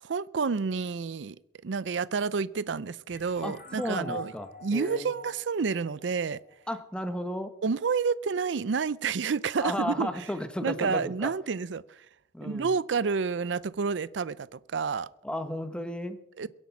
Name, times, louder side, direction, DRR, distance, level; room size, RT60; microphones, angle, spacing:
voice 1, 0.0-1.4 1.6-4.3 4.6-6.4 7.6-10.1 10.6-12.0 12.4-15.1 16.4-16.5, right 5 dB, 80° right, 0.5 m, -29 dB
sound 1, 3.1-6.5, left 2 dB, 50° left, 3.8 m, -45 dB
voice 2, 3.4-5.1 6.7-7.5 9.6-11.3 12.3-12.7 15.2-16.2, left 1 dB, 5° left, 1.0 m, -34 dB
22.5 x 8.1 x 5.9 m
head